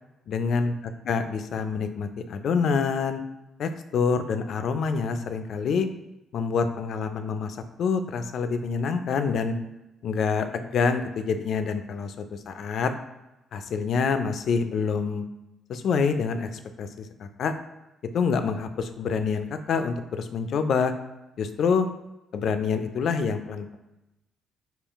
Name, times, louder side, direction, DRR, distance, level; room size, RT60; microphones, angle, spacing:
voice 1, 0.3-0.7 1.1-3.2 3.6-5.9 6.3-9.5 10.0-12.1 12.5-12.9 13.5-15.2 15.7-16.5 16.8-17.5 18.1-20.9 21.4-21.9 22.3-23.8, left 5 dB, 65° left, 8 dB, 0.3 m, -26 dB
3.6 x 2.3 x 3.4 m, 0.96 s
cardioid pair, 90°, 0 cm